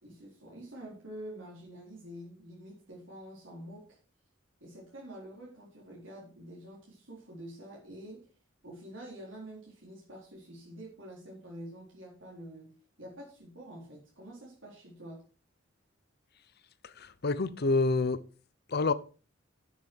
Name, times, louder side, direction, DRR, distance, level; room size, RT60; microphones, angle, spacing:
voice 1, 0.0-4.0 4.6-8.3 8.6-15.2, right 1 dB, 75° right, 4.1 m, -47 dB
voice 2, 16.8-18.2 18.7-18.9, left 3 dB, 55° left, 0.8 m, -28 dB
11.0 x 7.3 x 4.6 m
head